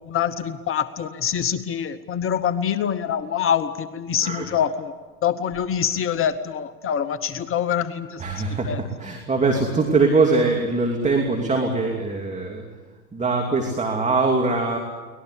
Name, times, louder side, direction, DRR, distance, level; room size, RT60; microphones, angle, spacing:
voice 1, 0.1-4.9 5.2-8.2 8.5-8.8, left 8 dB, 30° left, 13 dB, 1.0 m, -25 dB
voice 2, 4.2-4.6 8.2-12.6 13.1-14.8, right 3 dB, 15° right, 2 dB, 2.7 m, -22 dB
24.0 x 19.0 x 8.2 m, 1.4 s
hypercardioid pair, 100°, 45 cm